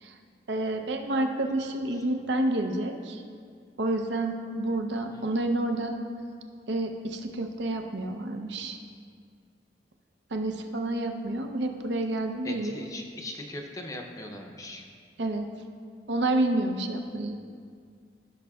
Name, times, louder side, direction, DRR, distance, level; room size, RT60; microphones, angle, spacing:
voice 1, 0.5-3.2 3.8-5.9 6.7-8.8 10.3-12.8 15.2-15.5 16.1-17.4, right 2 dB, 80° right, 4 dB, 0.7 m, -29 dB
voice 2, 12.4-14.9, left 1 dB, 20° left, 2 dB, 0.6 m, -40 dB
15.0 x 6.1 x 2.3 m, 2.1 s
head